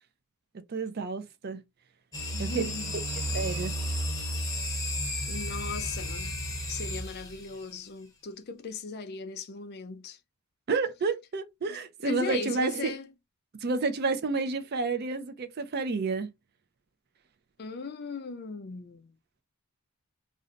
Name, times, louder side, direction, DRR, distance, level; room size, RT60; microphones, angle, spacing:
voice 1, 0.7-1.6 2.4-2.7 3.3-3.8 10.7-12.9 13.6-16.3, right 4 dB, 45° right, 0.4 m, -30 dB
Toy Engine Flying Around, 2.1-7.6, equal, 15° left, 0.7 m, -33 dB
voice 2, 2.3-2.9 5.3-6.4 6.7-10.2 11.7-13.1 17.6-19.1, left 4 dB, 45° left, 0.5 m, -38 dB
2.6 x 2.1 x 3.8 m
head